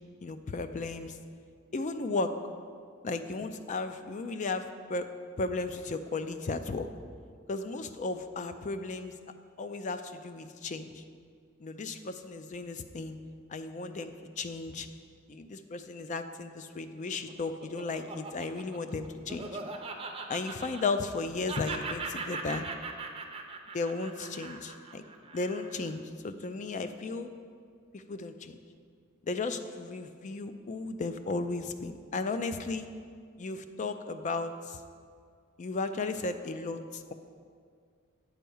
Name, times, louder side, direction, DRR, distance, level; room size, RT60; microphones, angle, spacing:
voice 1, 0.2-1.2 1.7-2.3 3.0-5.1 5.4-6.9 7.5-9.1 9.6-11.0 11.6-13.2 13.5-14.9 15.3-19.5 20.3-22.6 23.7-25.0 25.3-27.3 27.9-28.6 29.2-32.9 33.4-34.8 35.6-37.1, left 3 dB, 35° left, 9 dB, 0.4 m, -35 dB
Laughter, 16.9-21.2 21.5-25.9, right 3 dB, 25° right, 0.6 m, -40 dB
8.8 x 4.5 x 7.0 m, 2.1 s
head